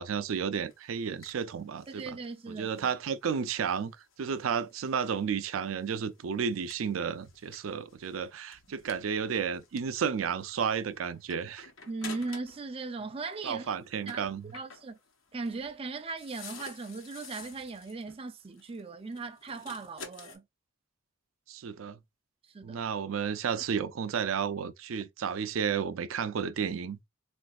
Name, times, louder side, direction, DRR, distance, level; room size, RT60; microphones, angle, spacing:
voice 1, 0.0-2.2 2.5-11.7 13.4-14.5 21.5-22.0 22.6-27.0, right 6 dB, 85° right, 0.4 m, -32 dB
sound 1, 0.6-12.7 13.0-20.4, left 5 dB, 75° left, 1.0 m, -51 dB
voice 2, 1.9-2.9 11.9-13.6 14.1-14.2 14.5-15.0 15.3-20.4 22.5-22.8, right 3 dB, 30° right, 0.4 m, -38 dB
3.9 x 2.5 x 2.3 m
head